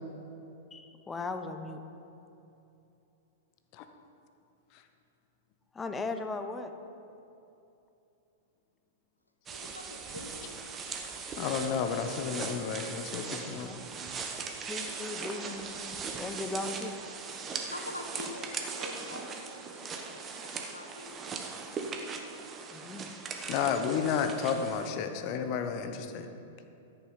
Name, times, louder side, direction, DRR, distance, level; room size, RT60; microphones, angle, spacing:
voice 1, 0.7-1.8 5.7-6.7 13.4-13.9 14.6-16.9 22.7-23.1, left 3 dB, 15° left, 7 dB, 0.9 m, -38 dB
voice 2, 9.5-10.5 14.8-15.0 17.4-21.2, left 2 dB, 90° left, 4 dB, 1.2 m, -45 dB
sound 1, 9.5-24.9, right 5 dB, 25° right, 1.3 m, -39 dB
voice 3, 11.4-13.7 23.5-26.3, left 7 dB, 45° left, 8 dB, 1.1 m, -31 dB
13.5 x 8.3 x 5.7 m, 2.8 s
figure-of-eight pair, 100°, 0 cm